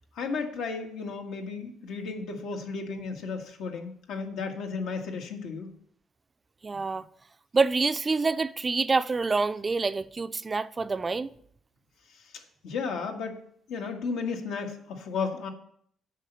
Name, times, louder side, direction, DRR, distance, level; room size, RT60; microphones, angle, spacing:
voice 1, 0.1-5.7 12.1-13.4 13.7-15.5, left 4 dB, 85° left, 1.7 m, -34 dB
voice 2, 6.6-7.1 7.5-11.3, right 4 dB, 25° right, 0.4 m, -26 dB
8.3 x 5.7 x 6.9 m
cardioid pair, 100°, 0 cm